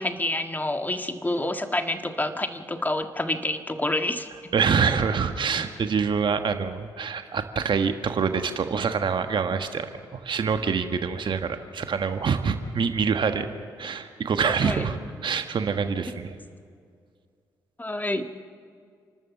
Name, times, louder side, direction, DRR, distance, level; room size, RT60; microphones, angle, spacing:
voice 1, 0.0-4.3 14.4-14.8 17.8-18.4, left 1 dB, 20° left, 7 dB, 1.6 m, -28 dB
voice 2, 4.5-13.5 13.8-16.3, right 6 dB, 60° right, 8 dB, 1.4 m, -26 dB
29.0 x 12.5 x 7.2 m, 2.2 s
hypercardioid pair, 40°, 9 cm